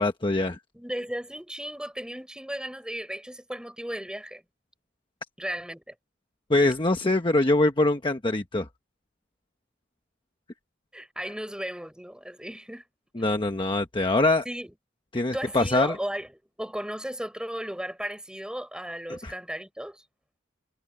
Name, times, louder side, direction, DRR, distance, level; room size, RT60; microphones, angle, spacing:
voice 1, 0.0-0.6 6.5-8.7 13.2-14.4 15.1-16.0 19.2-19.3, left 2 dB, 25° left, 1.1 m, -23 dB
voice 2, 0.7-4.4 5.4-5.9 10.9-12.8 14.4-14.7 15.3-20.0, equal, 5° right, 6.5 m, -35 dB
head